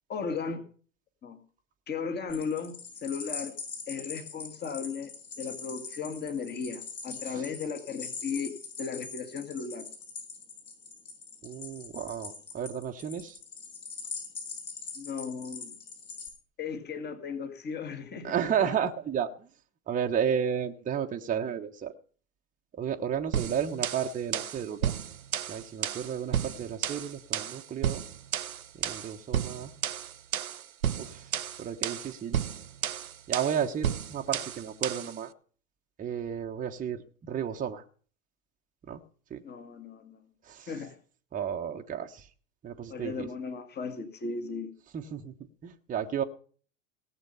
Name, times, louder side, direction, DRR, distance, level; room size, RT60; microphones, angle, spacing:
voice 1, 0.1-0.6 1.2-1.4 1.9-3.6 3.9-9.9 15.0-15.7 16.6-18.3 39.4-40.2 40.7-41.0 42.9-44.7, left 5 dB, 25° left, 6 dB, 2.1 m, -36 dB
sound 1, 2.3-16.3, left 4 dB, 50° left, 6.3 m, -42 dB
voice 2, 11.4-13.4 18.2-19.5 19.9-21.9 22.7-24.9 25.5-28.0 28.7-29.7 31.0-31.3 31.6-32.4 33.3-35.3 36.0-37.8 38.9-39.0 39.3-39.4 40.5-40.7 41.3-42.3 42.6-43.3 44.9-45.3 45.6-46.2, right 8 dB, 20° right, 3 dB, 1.1 m, -32 dB
sound 2, 23.3-35.2, right 9 dB, 85° right, 0.7 m, -33 dB
18.0 x 7.6 x 5.5 m, 0.43 s
figure-of-eight pair, 90°, 41 cm